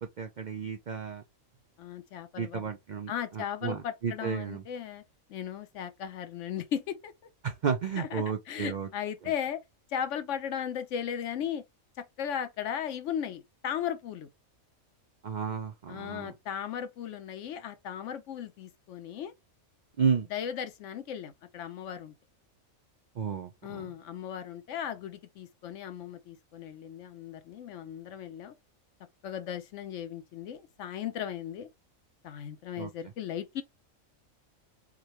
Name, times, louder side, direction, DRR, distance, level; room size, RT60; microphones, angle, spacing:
voice 1, 0.2-1.2 2.4-4.6 7.4-8.9 15.2-16.3 20.0-20.3 23.2-23.8 32.8-32.9, right 6 dB, 70° right, 0.4 m, -32 dB
voice 2, 1.8-2.7 3.1-5.0 5.3-7.1 8.0-9.6 9.9-11.6 12.0-14.3 15.9-19.3 20.3-22.1 23.6-28.5 29.2-31.7 32.2-33.6, left 9 dB, 70° left, 0.9 m, -36 dB
4.9 x 2.2 x 2.9 m
omnidirectional pair, 1.4 m